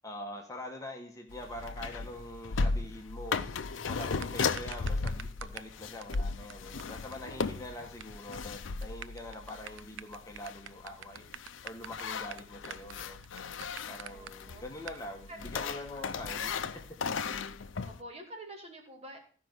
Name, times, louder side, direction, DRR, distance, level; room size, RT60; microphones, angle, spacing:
voice 1, 0.0-3.4 3.9-11.2 11.6-13.2 13.9-16.5, left 1 dB, 15° left, 1 dB, 1.2 m, -44 dB
sound 1, 1.3-18.0, left 4 dB, 75° left, 0.6 m, -36 dB
sound 2, 4.0-5.7 6.0-6.2 6.5-6.6 6.8-6.9 7.1-7.2 7.4-8.0 8.3-8.5 8.8-14.3 14.9-15.0, right 9 dB, 70° right, 0.4 m, -45 dB
voice 2, 14.1-14.6 15.3-15.5 16.0-16.4 17.8-19.2, right 1 dB, 30° right, 1 dB, 2.4 m, -48 dB
14.5 x 5.3 x 6.2 m, 0.43 s
head